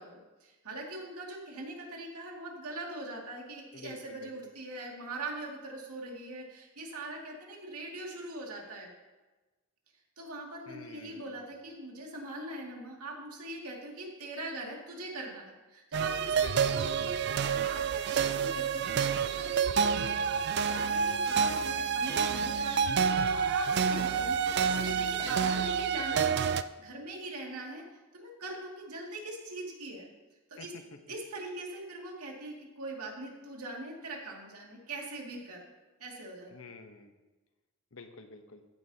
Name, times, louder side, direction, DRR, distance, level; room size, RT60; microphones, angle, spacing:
voice 1, 0.0-8.9 10.2-26.5 26.8-27.8 28.1-30.1 30.5-30.7 31.1-35.6 36.0-36.7, right 2 dB, 90° right, -1 dB, 2.4 m, -42 dB
voice 2, 3.7-4.5 10.7-11.5 16.3-17.1 24.6-26.5 30.6-30.8 36.5-37.1 37.9-38.6, left 3 dB, 65° left, 7 dB, 1.0 m, -49 dB
sound 1, 15.9-26.6, right 6 dB, 50° right, 0.3 m, -28 dB
14.5 x 9.7 x 2.9 m, 1.2 s
head